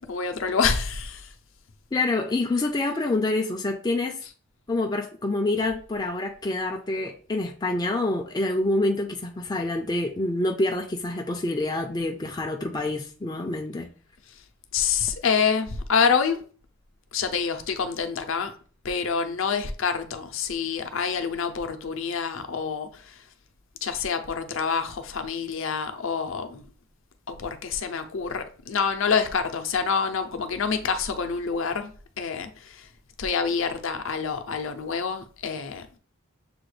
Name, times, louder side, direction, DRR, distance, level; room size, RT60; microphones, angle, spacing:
voice 1, 0.0-1.3 4.2-4.3 14.7-16.4 17.1-18.5 18.8-23.2 23.8-26.7 27.3-32.9 33.2-36.0, left 5 dB, 65° left, 0.6 m, -27 dB
voice 2, 1.9-4.2 4.7-13.9, left 2 dB, 20° left, 0.4 m, -27 dB
6.8 x 2.3 x 3.2 m
head